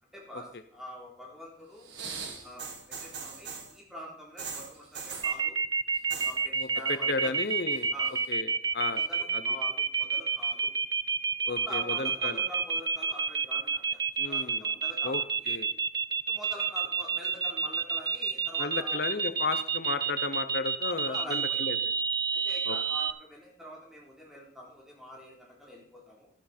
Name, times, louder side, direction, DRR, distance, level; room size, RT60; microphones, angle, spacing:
voice 1, 0.1-1.9 2.4-5.6 6.2-7.3 7.9-8.1 8.9-10.7 11.6-15.6 16.3-19.0 20.8-21.6 22.3-26.3, equal, 5° right, -3 dB, 3.5 m, -45 dB
sound 1, 1.8-3.8 4.4-5.4 5.9-6.4 6.6-7.1 7.5-8.3 9.0-9.1, right 5 dB, 90° right, 2.1 m, -40 dB
sound 2, 5.2-23.1, right 6 dB, 25° right, 0.4 m, -29 dB
voice 2, 6.5-7.9 8.3-9.0 9.3-9.4 11.5-12.4 14.2-14.7 15.0-15.7 18.6-21.9 22.6-22.8, left 3 dB, 65° left, 10 dB, 0.7 m, -34 dB
12.0 x 10.5 x 4.3 m, 0.62 s
head